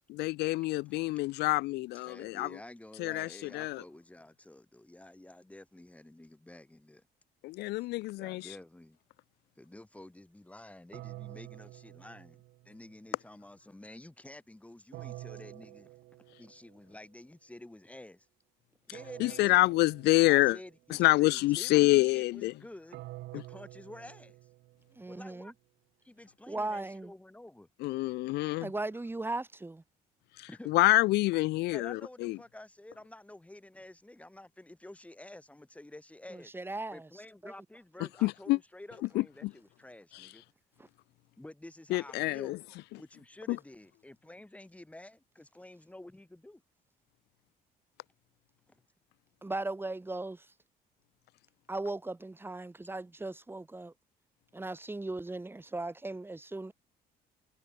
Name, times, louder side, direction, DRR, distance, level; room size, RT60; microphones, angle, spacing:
voice 1, 0.1-2.5 3.0-3.8 7.4-8.5 19.2-20.6 20.9-22.5 27.8-28.7 30.4-32.4 38.2-38.6 39.1-39.5 40.1-40.3 41.9-42.6 43.5-43.6, left 20 dB, 80° left, 0.4 m, -27 dB
voice 2, 2.0-7.0 8.2-9.0 9.6-16.0 16.4-18.3 18.9-19.6 20.3-23.0 23.3-24.4 25.1-25.5 26.0-27.7 30.5-30.7 31.7-36.5 36.9-40.4 41.4-42.6 43.0-46.6 48.7-48.8, left 1 dB, 10° left, 5.5 m, -50 dB
sound 1, 10.9-13.0 14.9-16.8 18.9-20.8 22.9-25.1, right 18 dB, 85° right, 5.7 m, -48 dB
voice 3, 25.0-25.5 26.5-27.1 28.6-29.8 36.3-37.1 37.4-37.5 49.4-50.5 51.7-53.9 54.5-56.7, right 2 dB, 15° right, 4.7 m, -37 dB
cardioid pair, 110°, 17 cm